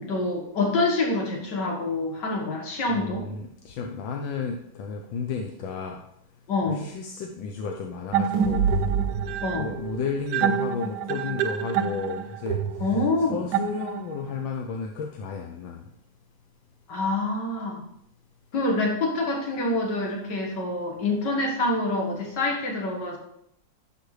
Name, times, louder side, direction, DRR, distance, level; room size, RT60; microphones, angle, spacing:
voice 1, 0.0-3.3 6.5-6.9 9.4-9.7 12.8-13.4 16.9-17.8 18.5-23.2, left 2 dB, 65° left, 0 dB, 2.2 m, -26 dB
voice 2, 2.9-6.0 6.7-8.6 9.5-12.9 13.3-15.8, left 5 dB, 85° left, 2 dB, 1.5 m, -33 dB
sound 1, 8.1-14.3, right 7 dB, 75° right, 1.1 m, -26 dB
11.0 x 6.4 x 3.3 m, 0.75 s
omnidirectional pair, 2.0 m